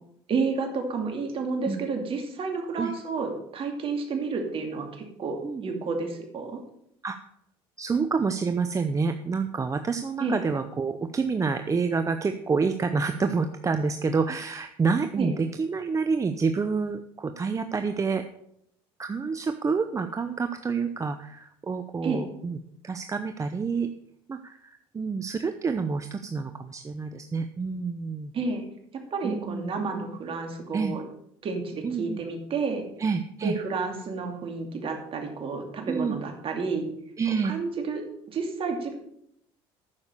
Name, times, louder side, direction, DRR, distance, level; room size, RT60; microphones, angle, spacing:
voice 1, 0.3-6.6 10.2-10.4 15.2-15.3 22.0-22.2 28.3-28.6 29.1-31.0 31.4-32.8 33.4-36.9 37.4-39.0, right 4 dB, 45° right, 4 dB, 2.6 m, -30 dB
voice 2, 7.8-18.2 19.0-22.6 22.8-23.9 24.3-28.3 29.2-29.6 30.7-30.9 31.8-32.2 33.0-33.5 35.9-36.2 37.2-37.5, right 5 dB, 25° right, 8 dB, 0.7 m, -28 dB
9.7 x 6.9 x 6.6 m, 0.74 s
supercardioid pair, 85°, 13 cm